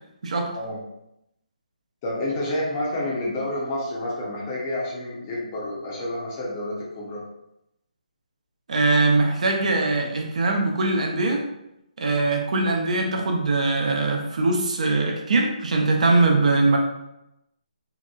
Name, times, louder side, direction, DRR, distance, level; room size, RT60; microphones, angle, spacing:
voice 1, 2.0-7.2, left 1 dB, 25° left, -4 dB, 0.6 m, -29 dB
voice 2, 8.7-11.4 12.0-16.8, right 3 dB, 55° right, 2 dB, 0.5 m, -21 dB
2.8 x 2.2 x 2.2 m, 0.85 s
hypercardioid pair, 160°, 4 cm